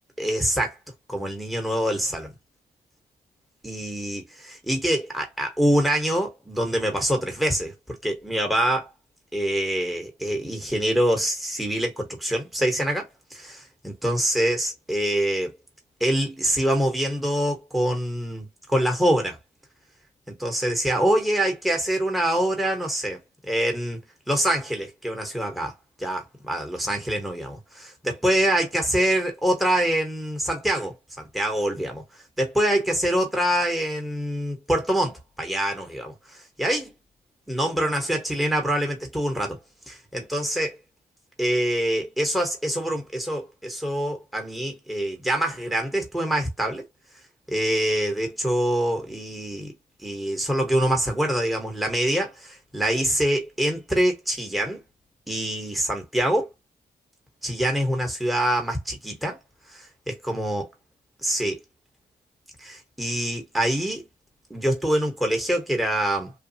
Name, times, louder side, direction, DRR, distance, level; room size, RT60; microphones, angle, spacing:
voice 1, 0.2-0.8 1.1-2.3 3.6-8.9 9.3-15.5 16.0-19.4 20.3-23.2 23.5-24.0 24.3-25.7 26.0-32.0 32.4-36.9 37.5-39.6 39.9-40.8 41.4-46.8 47.5-49.7 50.0-54.8 55.3-56.5 57.4-59.4 59.7-60.6 61.2-61.6 62.6-64.0 64.5-66.3, right 1 dB, ahead, 1.1 m, -25 dB
3.0 x 2.2 x 2.8 m
cardioid pair, 75°, 17 cm